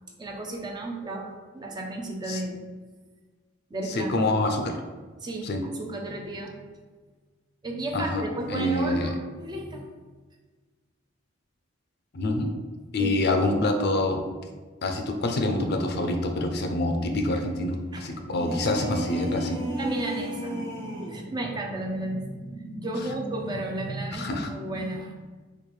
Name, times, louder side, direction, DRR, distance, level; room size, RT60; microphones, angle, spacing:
voice 1, 0.2-2.6 3.7-4.1 5.2-6.5 7.6-9.9 13.0-13.1 17.9-18.1 19.8-25.2, right 1 dB, 20° right, 1 dB, 0.4 m, -33 dB
voice 2, 3.9-4.7 5.4-5.6 7.9-8.2 8.5-9.1 12.1-12.5 12.9-14.2 14.8-19.6 24.1-24.5, left 2 dB, 55° left, 4 dB, 0.4 m, -26 dB
sound 1, 18.3-21.2, equal, 70° right, 0.8 m, -33 dB
4.4 x 2.4 x 3.1 m, 1.4 s
head